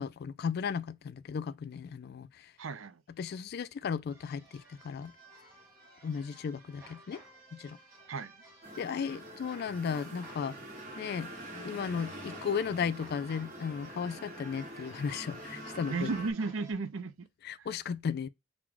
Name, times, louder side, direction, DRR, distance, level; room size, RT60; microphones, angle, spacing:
voice 1, 0.0-2.3 3.2-5.1 6.0-7.2 7.5-7.8 8.8-10.6 11.0-11.3 11.6-16.1 17.4-18.3, left 6 dB, 55° left, 0.3 m, -35 dB
voice 2, 2.6-3.0 8.1-8.3 15.9-17.3 17.6-17.7, right 4 dB, 80° right, 0.5 m, -34 dB
sound 1, 4.1-16.7, right 1 dB, 15° right, 1.9 m, -55 dB
sound 2, 8.6-16.3, right 1 dB, 40° right, 1.7 m, -45 dB
6.0 x 2.2 x 3.8 m
head